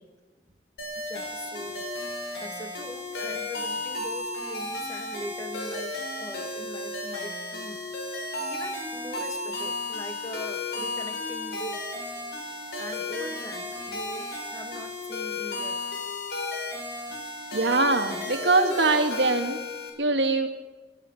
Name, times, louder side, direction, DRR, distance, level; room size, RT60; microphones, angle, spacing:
sound 1, 0.8-19.9, left 2 dB, 70° left, 6.6 m, -34 dB
voice 1, 0.8-1.9 2.4-7.9 8.5-11.9 12.8-15.9, equal, 20° left, 6 dB, 1.9 m, -41 dB
voice 2, 17.5-19.6 20.0-20.5, right 3 dB, 85° right, 5 dB, 2.3 m, -23 dB
24.0 x 13.5 x 8.6 m, 1.2 s
head